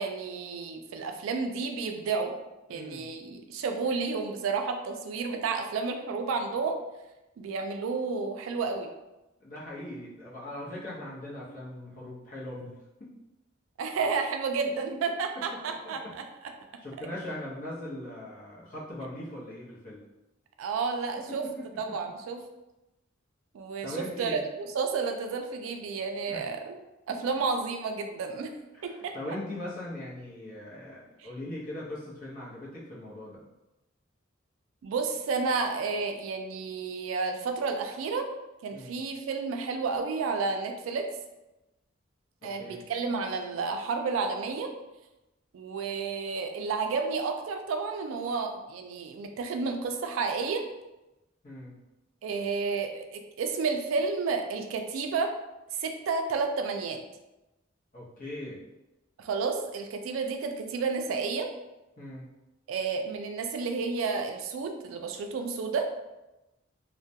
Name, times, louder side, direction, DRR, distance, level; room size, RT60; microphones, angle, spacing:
voice 1, 0.0-2.4 2.7-6.8 7.4-8.9 13.8-16.2 20.6-21.4 21.8-22.4 23.5-23.9 24.2-26.8 27.1-28.5 28.8-29.4 34.8-38.3 38.6-41.1 42.4-44.7 45.5-50.6 52.2-55.3 55.7-57.0 59.2-61.5 62.7-65.9, right 4 dB, 80° right, 6 dB, 0.3 m, -31 dB
voice 2, 2.7-3.1 9.4-12.7 13.0-13.1 14.6-14.7 15.3-16.1 16.8-20.0 21.4-22.0 23.8-24.4 26.3-26.4 28.7-33.4 38.7-39.0 42.4-42.8 51.4-51.8 57.9-58.6 62.0-62.3, left 1 dB, 40° left, -6 dB, 0.7 m, -40 dB
2.2 x 2.1 x 2.7 m, 0.99 s
head